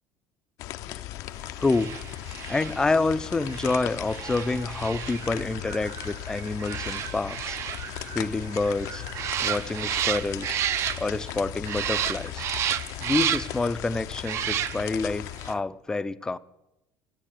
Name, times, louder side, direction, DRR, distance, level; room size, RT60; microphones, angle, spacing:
sound 1, 0.6-15.5, left 15 dB, 60° left, 0.6 m, -38 dB
voice 1, 0.9-2.0 2.5-7.6 8.1-9.0 9.4-10.6 11.0-12.5 13.0-16.4, left 3 dB, 10° left, 0.4 m, -28 dB
sound 2, 1.6-11.4 11.6-13.7 14.2-15.1 15.4-15.5, right 10 dB, 45° right, 0.6 m, -32 dB
13.5 x 9.8 x 8.3 m
cardioid pair, 150°, 7 cm